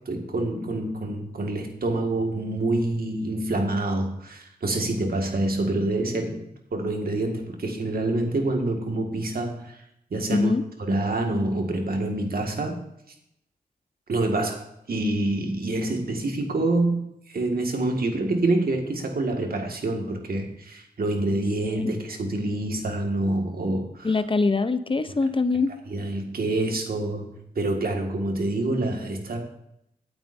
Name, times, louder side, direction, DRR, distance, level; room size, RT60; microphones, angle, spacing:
voice 1, 0.1-6.4 6.7-9.8 10.1-10.5 10.8-12.8 14.1-24.2 25.9-29.4, right 2 dB, 65° right, 2 dB, 2.0 m, -27 dB
voice 2, 10.3-10.6 24.0-25.7, left 3 dB, 30° left, 11 dB, 0.8 m, -23 dB
17.5 x 8.9 x 2.7 m, 0.79 s
cardioid pair, 50°, 16 cm